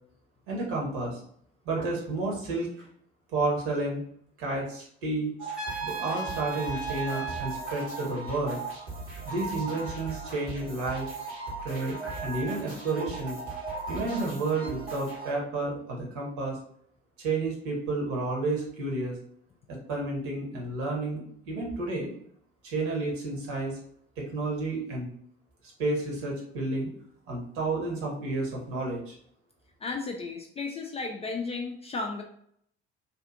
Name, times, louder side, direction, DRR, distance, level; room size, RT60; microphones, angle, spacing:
voice 1, 0.5-1.2 1.6-2.9 3.3-4.0 4.4-5.3 5.8-8.6 9.2-11.1 11.6-13.4 13.9-16.6 17.2-19.2 19.7-22.1 22.6-23.8 24.2-25.1 25.8-26.9 27.3-29.1, right 2 dB, 60° right, -2 dB, 1.1 m, -31 dB
sound 1, 5.4-15.3, right 3 dB, 75° right, 1.2 m, -38 dB
Trumpet, 5.5-7.6, right 5 dB, ahead, 0.7 m, -35 dB
voice 2, 29.8-32.2, left 3 dB, 20° left, 2 dB, 0.3 m, -34 dB
2.8 x 2.4 x 2.4 m, 0.66 s
figure-of-eight pair, 55°, 33 cm